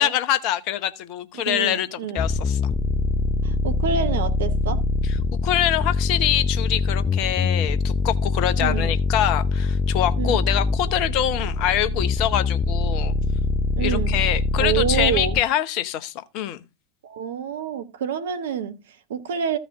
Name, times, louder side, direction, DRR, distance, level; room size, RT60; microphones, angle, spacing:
voice 1, 0.0-2.6 5.4-13.1 13.8-16.6, left 11 dB, 40° left, 0.9 m, -24 dB
voice 2, 1.3-2.2 3.4-4.8 7.4-7.5 8.6-9.0 10.2-10.4 13.8-14.2 14.6-15.4 17.0-19.6, right 7 dB, 60° right, 1.3 m, -27 dB
sound 1, 2.2-15.4, left 3 dB, 20° left, 0.5 m, -23 dB
14.5 x 5.2 x 3.7 m
figure-of-eight pair, 90°, 0 cm